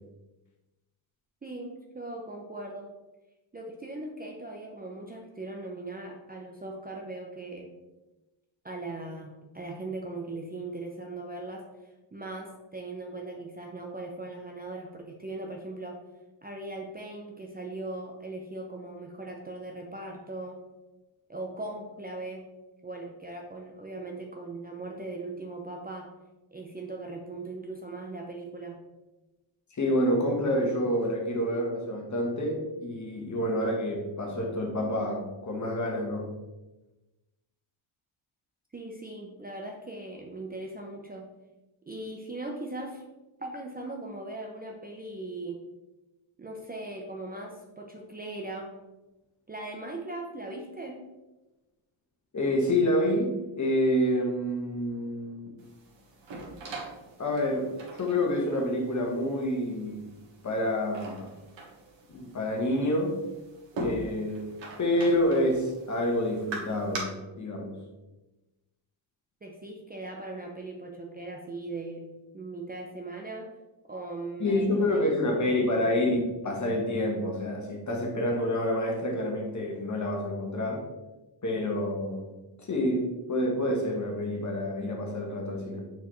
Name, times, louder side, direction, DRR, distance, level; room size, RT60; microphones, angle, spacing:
voice 1, 1.4-2.9 3.5-7.7 8.6-11.7 12.1-16.0 16.4-20.6 21.3-22.5 22.8-26.1 26.5-28.8 38.7-41.3 41.9-43.0 43.4-45.6 46.4-48.7 49.5-51.0 69.4-72.1 72.3-73.5 73.9-75.0 75.3-75.8, right 2 dB, 20° right, 0 dB, 0.6 m, -39 dB
voice 2, 29.8-36.3 52.3-55.5 57.2-60.0 60.4-61.3 62.1-63.2 63.7-64.5 64.8-67.7 74.4-76.2 76.4-80.8 81.4-85.9, left 1 dB, 35° left, 1 dB, 1.3 m, -28 dB
sound 1, 55.6-67.0, right 2 dB, 65° right, 1.6 m, -42 dB
6.6 x 4.7 x 3.1 m, 1.0 s
cardioid pair, 130°, 48 cm